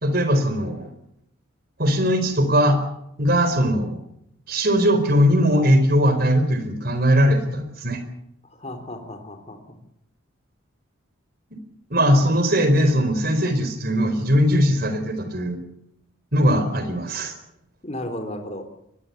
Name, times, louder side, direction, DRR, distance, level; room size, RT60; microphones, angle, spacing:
voice 1, 0.0-0.9 1.8-2.8 3.2-4.0 4.5-8.0 11.9-15.6 16.3-17.3, equal, 45° right, 9 dB, 4.5 m, -20 dB
voice 2, 8.4-9.8 17.8-18.6, left 1 dB, 30° left, 6 dB, 3.4 m, -34 dB
23.0 x 20.5 x 7.1 m, 0.76 s
head